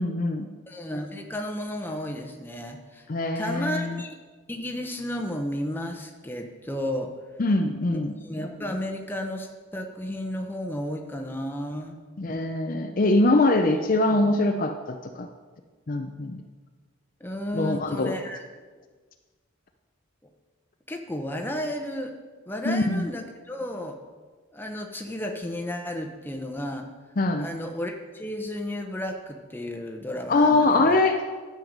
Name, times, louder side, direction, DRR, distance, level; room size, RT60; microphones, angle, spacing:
voice 1, 0.0-0.5 3.1-4.0 7.4-8.1 12.2-15.3 15.9-16.4 17.5-18.1 22.6-23.1 27.2-27.5 30.3-31.2, left 2 dB, 40° left, 5 dB, 0.5 m, -23 dB
voice 2, 0.7-3.1 3.3-4.2 4.5-7.1 7.9-12.0 13.7-13.8 14.1-14.3 17.2-18.5 20.9-22.1 22.5-24.0 24.5-26.9 27.4-31.0, left 1 dB, 10° left, 3 dB, 0.8 m, -33 dB
11.0 x 7.8 x 5.2 m, 1.4 s
head